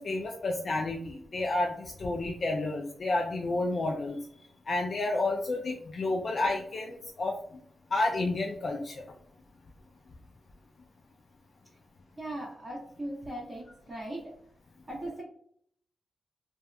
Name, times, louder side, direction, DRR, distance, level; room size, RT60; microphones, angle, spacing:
voice 1, 0.0-4.2 4.7-7.4 7.9-9.0, left 2 dB, 50° left, 0 dB, 0.3 m, -30 dB
voice 2, 12.2-14.3 14.9-15.2, right 1 dB, 20° right, -6 dB, 0.6 m, -39 dB
2.8 x 2.2 x 2.3 m, 0.66 s
wide cardioid pair, 120°, 0 cm